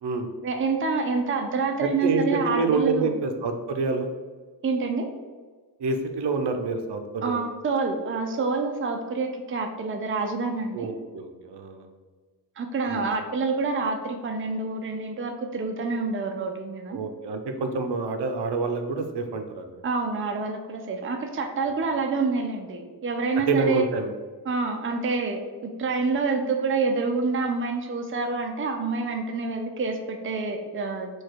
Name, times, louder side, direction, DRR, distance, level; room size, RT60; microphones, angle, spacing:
voice 1, 0.4-3.1 4.6-5.1 7.2-10.9 12.6-17.0 19.8-23.8 24.5-31.1, right 4 dB, 30° right, 4 dB, 0.5 m, -27 dB
voice 2, 1.8-4.1 5.8-7.4 10.7-11.9 12.9-13.1 16.9-19.8 23.5-24.1, right 4 dB, 75° right, 6 dB, 0.6 m, -27 dB
4.5 x 2.3 x 4.5 m, 1.4 s
wide cardioid pair, 105°, 41 cm